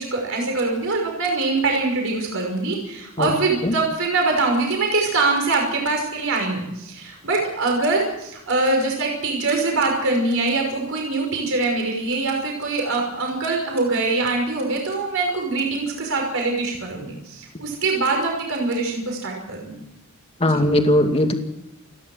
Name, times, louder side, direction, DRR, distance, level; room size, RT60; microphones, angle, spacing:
voice 1, 0.0-19.8 20.4-20.5, right 3 dB, 65° right, 1 dB, 5.7 m, -23 dB
voice 2, 20.4-21.4, left 1 dB, 25° left, 4 dB, 2.4 m, -18 dB
29.5 x 11.5 x 7.7 m, 0.84 s
head